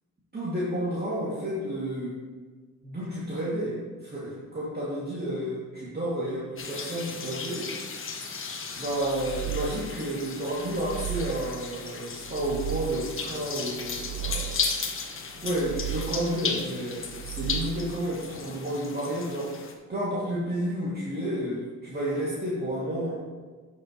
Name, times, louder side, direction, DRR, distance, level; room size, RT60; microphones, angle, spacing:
voice 1, 0.3-2.2 2.8-7.7 8.7-14.6 15.4-23.2, right 1 dB, 30° right, -8 dB, 2.6 m, -31 dB
sound 1, 6.6-19.7, left 5 dB, 45° left, 1.2 m, -35 dB
sound 2, 9.0-10.1 10.6-11.7 12.2-13.2 13.8-14.9 15.3-16.4 17.0-18.1, right 17 dB, 65° right, 0.4 m, -36 dB
10.0 x 7.0 x 3.2 m, 1.4 s
cardioid pair, 90°, 30 cm